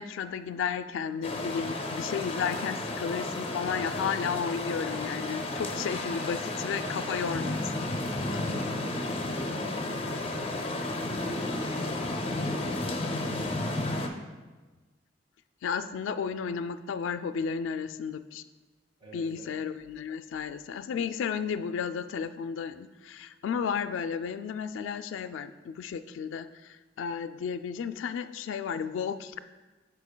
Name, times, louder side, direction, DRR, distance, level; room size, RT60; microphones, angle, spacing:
voice 1, 0.0-7.9 15.6-18.4 19.1-29.4, left 6 dB, 85° left, 13 dB, 0.3 m, -33 dB
sound 1, 1.2-14.1, left 2 dB, 30° left, 0.5 m, -32 dB
voice 2, 8.2-13.8 19.0-19.5, right 1 dB, 30° right, -3 dB, 1.7 m, -46 dB
12.0 x 4.5 x 2.2 m, 1.3 s
head